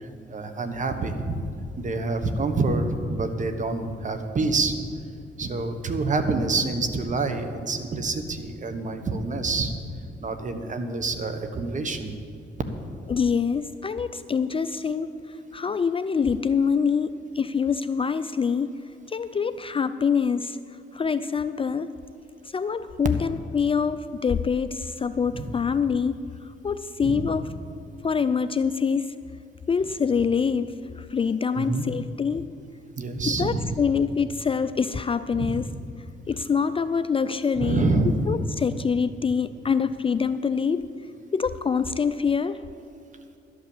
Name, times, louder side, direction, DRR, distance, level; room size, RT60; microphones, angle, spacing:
voice 1, 0.0-1.4 1.8-4.8 5.4-9.7 10.2-12.1 25.3-25.5 27.0-27.3 31.6-31.9 33.0-33.7 35.3-35.6 37.6-38.3, right 3 dB, 40° right, 8 dB, 1.3 m, -27 dB
voice 2, 13.1-18.7 19.1-20.6 20.9-21.9 22.5-26.2 26.4-27.5 28.0-29.1 29.7-32.5 33.3-35.7 36.3-37.8 38.3-40.9 41.3-42.6, left 6 dB, 25° left, 12 dB, 0.4 m, -25 dB
12.0 x 8.5 x 7.2 m, 2.4 s
cardioid pair, 90°, 20 cm